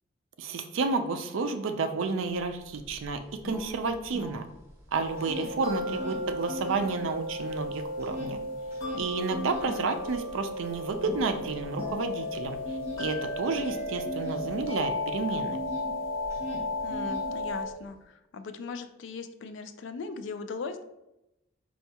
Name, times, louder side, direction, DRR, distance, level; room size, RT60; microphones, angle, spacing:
voice 1, 0.4-4.4 4.9-8.4 9.0-12.6 13.0-15.6, right 4 dB, 70° right, 7 dB, 0.4 m, -31 dB
sound 1, 2.4-2.5 2.8-4.8 5.0-6.9 7.3-15.9 16.2-17.7, equal, 15° right, 0.6 m, -40 dB
sound 2, 4.9-17.7, left 1 dB, 75° left, 1.1 m, -34 dB
voice 2, 16.8-20.8, left 4 dB, 60° left, 8 dB, 0.3 m, -39 dB
4.3 x 2.3 x 2.8 m, 0.89 s
head